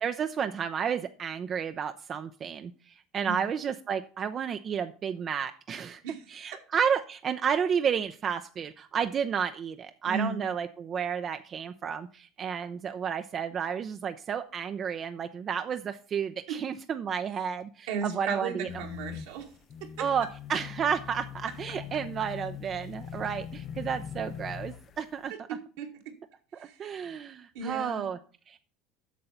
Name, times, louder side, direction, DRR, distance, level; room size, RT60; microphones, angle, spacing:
voice 1, 0.0-6.0 6.3-18.7 20.0-25.3 26.5-28.2 28.5-28.6, right 7 dB, 40° right, 9 dB, 0.6 m, -31 dB
voice 2, 10.1-10.4 16.5-16.6 17.9-19.5 19.8-20.1 25.3-26.1 26.6-26.9 27.5-28.1, right 5 dB, 80° right, 1 dB, 2.1 m, -36 dB
sound 1, 18.7-25.1, left 9 dB, 45° left, 0.6 m, -41 dB
8.3 x 6.5 x 5.7 m, 0.40 s
supercardioid pair, 90°, 0 cm